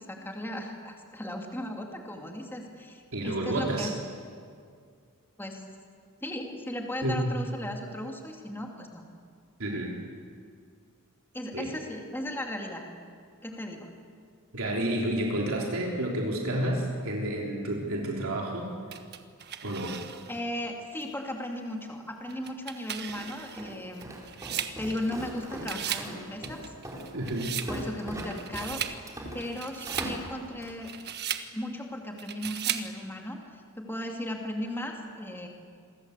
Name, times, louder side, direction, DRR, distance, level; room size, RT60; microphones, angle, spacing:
voice 1, 0.0-3.9 5.4-5.6 6.2-9.0 11.3-12.8 13.4-13.9 20.3-24.1 24.8-26.6 27.7-28.8 29.3-30.9 31.5-35.5, left 1 dB, 10° left, 1 dB, 2.7 m, -36 dB
voice 2, 3.1-3.9 7.0-7.3 9.6-10.0 11.5-11.7 14.5-18.7 19.6-20.0 27.1-27.6, right 1 dB, 70° right, -1 dB, 3.6 m, -30 dB
sound 1, 18.9-20.4 21.0-21.1 22.3-25.3 25.6-26.1 26.4-27.7 28.2-29.0 29.4-30.1 30.7-31.5 32.2-32.9, right 9 dB, 50° right, 1.4 m, -36 dB
Walk footsteps, 23.1-30.8, equal, 15° right, 4.4 m, -40 dB
27.5 x 22.5 x 8.2 m, 2.1 s
head